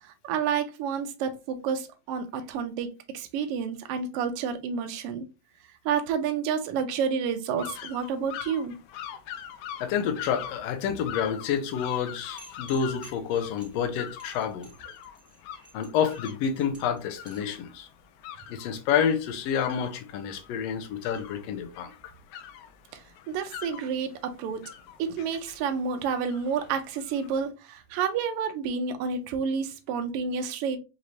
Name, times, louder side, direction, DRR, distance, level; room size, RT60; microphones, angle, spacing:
voice 1, 0.0-5.3 5.8-8.7 22.9-24.6 25.0-30.8, right 6 dB, 85° right, 1.3 m, -30 dB
sound 1, 7.6-27.5, left 9 dB, 90° left, 1.3 m, -44 dB
voice 2, 9.8-14.7 15.7-17.9 18.5-22.1, left 8 dB, 75° left, 1.7 m, -29 dB
sound 2, 12.4-17.6, right 1 dB, ahead, 1.0 m, -52 dB
5.0 x 3.1 x 2.7 m
omnidirectional pair, 3.3 m